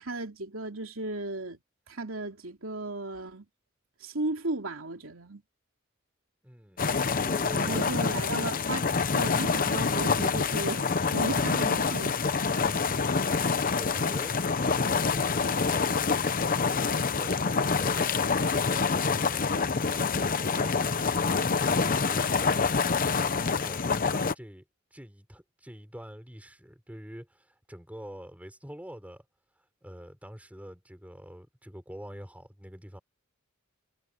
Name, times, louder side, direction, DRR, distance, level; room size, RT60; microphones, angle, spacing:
voice 1, 0.0-1.6 1.9-3.5 4.0-5.4 7.5-12.2 14.0-14.4, right 2 dB, 90° right, 2.9 m, -35 dB
voice 2, 6.4-6.8 7.2-8.2 12.5-13.2 13.7-24.6 24.9-29.2 29.8-33.0, equal, 5° right, 5.6 m, -46 dB
sound 1, 6.8-24.3, left 5 dB, 45° left, 0.8 m, -26 dB
head